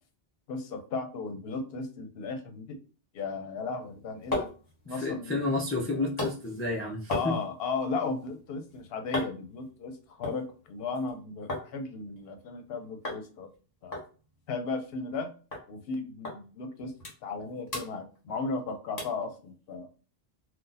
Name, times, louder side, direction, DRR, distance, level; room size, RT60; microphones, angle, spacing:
voice 1, 0.5-2.8 3.1-4.5 4.9-5.4 5.9-6.1 7.1-13.5 13.8-14.0 14.5-15.3 15.7-16.9 17.2-19.9, left 4 dB, 70° left, 6 dB, 0.8 m, -35 dB
sound 1, 3.8-11.7 12.0-12.7 13.0-13.2 13.5-13.6 13.9-15.2 15.5-15.7 16.2-16.4 16.8-17.4 17.7-18.6 19.0-19.3 19.7-19.8, left 1 dB, 40° left, 1.2 m, -38 dB
voice 2, 4.9-7.4, left 2 dB, 15° left, -3 dB, 0.5 m, -31 dB
2.6 x 2.3 x 3.8 m, 0.36 s
omnidirectional pair, 1.0 m